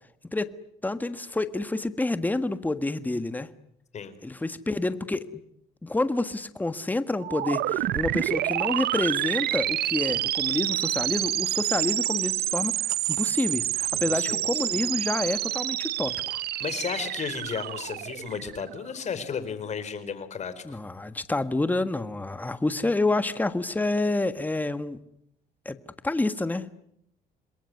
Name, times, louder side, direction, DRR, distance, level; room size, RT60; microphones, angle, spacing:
voice 1, 0.8-3.5 4.2-5.3 5.8-12.7 13.1-16.4 20.6-25.0 25.6-25.8 26.0-26.7, left 2 dB, 10° left, 12 dB, 1.5 m, -28 dB
sound 1, 7.2-18.9, right 13 dB, 70° right, 1.1 m, -28 dB
voice 2, 13.9-14.6 16.6-20.8, left 6 dB, 45° left, 12 dB, 4.3 m, -34 dB
27.5 x 21.5 x 9.5 m, 0.73 s
cardioid pair, 110°, 17 cm